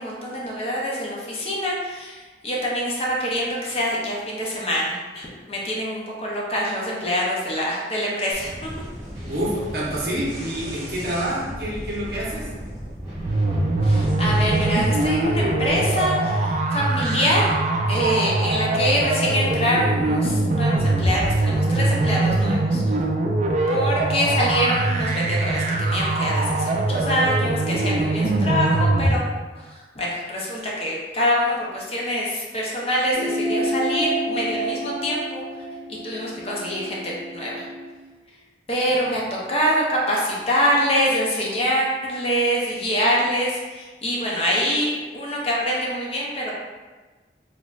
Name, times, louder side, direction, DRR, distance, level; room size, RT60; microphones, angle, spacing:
voice 1, 0.0-8.7 13.8-17.5 17.9-23.0 23.7-29.2 29.5-35.7 36.0-37.7 38.7-46.5, equal, 35° left, -4 dB, 0.6 m, -25 dB
sound 1, 8.3-15.9, equal, 20° right, 1.2 m, -35 dB
voice 2, 9.3-12.5 38.9-39.0, right 1 dB, 60° right, -5 dB, 1.0 m, -27 dB
sound 2, 13.2-29.2, right 2 dB, 40° right, 0.3 m, -22 dB
sound 3, 33.1-37.9, right 1 dB, 85° right, 0.8 m, -29 dB
4.1 x 2.8 x 2.4 m, 1.3 s
head